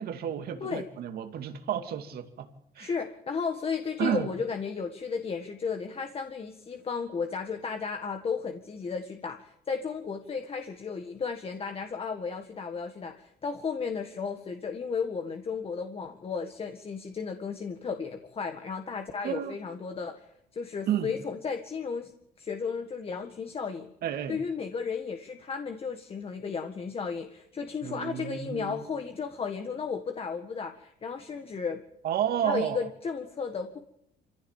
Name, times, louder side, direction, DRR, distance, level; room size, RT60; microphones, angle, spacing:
voice 1, 0.0-2.9 4.0-4.3 19.2-19.6 20.9-21.1 24.0-24.4 27.8-28.9 32.0-32.9, right 10 dB, 65° right, 7 dB, 2.5 m, -31 dB
voice 2, 2.8-20.2 20.5-22.1 22.4-23.9 24.3-31.8 32.4-33.8, left 5 dB, 35° left, 6 dB, 1.7 m, -34 dB
26.0 x 16.0 x 7.3 m, 0.77 s
cardioid pair, 110°, 17 cm